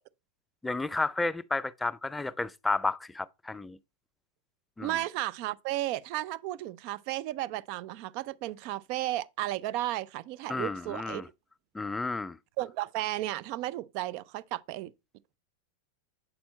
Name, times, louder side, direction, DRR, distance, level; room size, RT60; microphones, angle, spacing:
voice 1, 0.6-3.8 4.8-5.0 10.5-11.3 11.7-12.4, left 3 dB, 10° left, 0.4 m, -32 dB
voice 2, 4.8-11.2 12.6-14.9, right 15 dB, 50° right, 0.4 m, -34 dB
7.6 x 4.3 x 4.0 m
hypercardioid pair, 95°, 0 cm